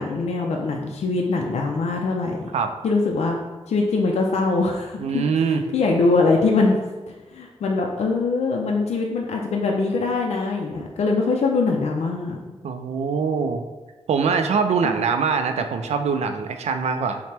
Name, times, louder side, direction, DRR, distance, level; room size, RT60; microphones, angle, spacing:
voice 1, 0.0-2.4 2.8-3.4 3.7-6.8 7.1-12.4 14.8-14.9, left 3 dB, 90° left, 0 dB, 0.4 m, -22 dB
voice 2, 5.0-5.6 12.6-13.6 14.1-17.2, right 5 dB, 85° right, 7 dB, 0.4 m, -23 dB
5.6 x 2.1 x 3.3 m, 1.2 s
wide cardioid pair, 165°, 11 cm